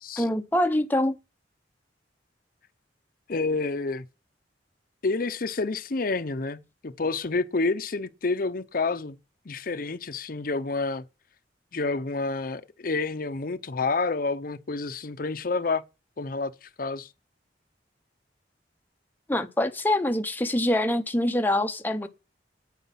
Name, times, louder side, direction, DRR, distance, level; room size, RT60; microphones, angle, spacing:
voice 1, 0.2-1.2 19.3-22.1, left 1 dB, 10° left, 0.7 m, -25 dB
voice 2, 3.3-4.0 5.0-9.2 9.5-11.0 11.7-15.8 16.2-17.1, left 3 dB, 50° left, 0.7 m, -29 dB
9.4 x 9.1 x 5.7 m
head